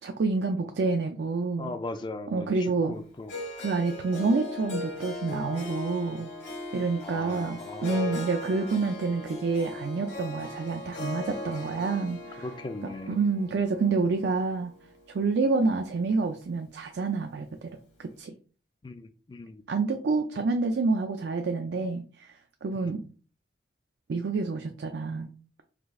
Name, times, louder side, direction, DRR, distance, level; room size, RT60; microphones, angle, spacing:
voice 1, 0.0-1.8 2.3-2.9 3.6-6.3 6.7-12.4 13.1-14.7 15.1-17.7 18.0-18.3 19.7-22.3 22.6-23.0 24.1-25.3, right 4 dB, 70° right, 0.4 m, -28 dB
voice 2, 1.6-3.3 7.0-8.2 12.4-13.2 18.8-19.6 22.7-23.0, left 2 dB, 25° left, 0.3 m, -39 dB
Harp, 3.3-15.4, left 2 dB, 80° left, 2.3 m, -39 dB
5.0 x 2.3 x 3.6 m
head